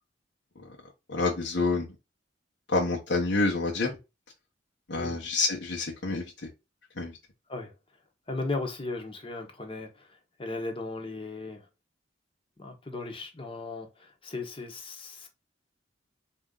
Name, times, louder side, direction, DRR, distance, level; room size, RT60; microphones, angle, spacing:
voice 1, 1.1-1.9 2.7-3.9 4.9-6.2 7.0-7.1, left 3 dB, 70° left, 1.1 m, -27 dB
voice 2, 8.3-10.1 10.4-11.6 12.6-15.3, left 3 dB, 30° left, 1.1 m, -36 dB
4.3 x 2.8 x 3.7 m
head